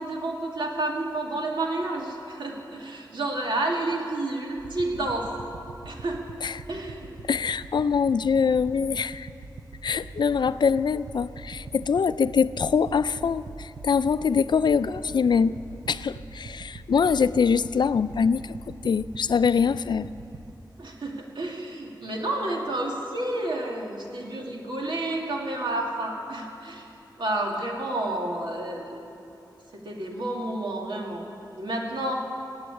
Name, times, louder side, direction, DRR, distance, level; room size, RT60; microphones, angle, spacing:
voice 1, 0.0-5.3 5.9-6.2 6.7-7.2 20.8-26.9 27.2-29.0 29.8-31.3 31.6-32.2, right 2 dB, 90° right, 0 dB, 2.2 m, -30 dB
sound 1, 4.6-20.5, right 3 dB, 60° right, 0.7 m, -43 dB
voice 2, 7.3-9.3 9.8-15.5 15.9-18.6 18.8-20.1, left 6 dB, 75° left, 15 dB, 0.4 m, -24 dB
18.0 x 8.0 x 9.6 m, 2.8 s
wide cardioid pair, 90°, 8 cm